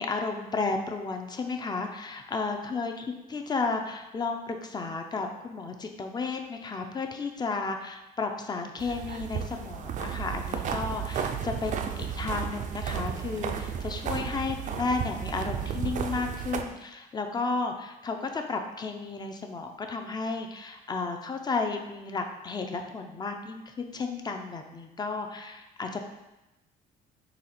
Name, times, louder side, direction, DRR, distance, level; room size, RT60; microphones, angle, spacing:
voice 1, 0.0-2.9 3.3-26.0, left 4 dB, 25° left, 4 dB, 0.5 m, -33 dB
sound 1, 8.8-16.6, right 7 dB, 45° right, 0.4 m, -33 dB
4.1 x 2.9 x 4.2 m, 0.99 s
cardioid pair, 110°, 17 cm